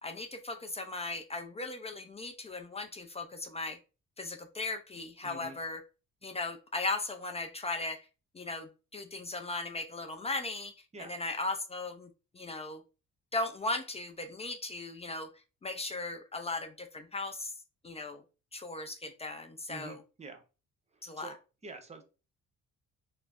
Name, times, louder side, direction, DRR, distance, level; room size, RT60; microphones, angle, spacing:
voice 1, 0.0-3.8 4.2-5.8 6.2-8.0 8.3-12.1 12.3-12.8 13.3-15.3 15.6-17.5 17.8-18.2 18.5-20.0 21.0-21.3, left 2 dB, 20° left, 0.3 m, -37 dB
voice 2, 5.2-5.6 10.9-11.2 19.7-20.4 20.9-22.0, right 3 dB, 20° right, 0.7 m, -47 dB
2.4 x 2.0 x 3.4 m
cardioid pair, 90°, 30 cm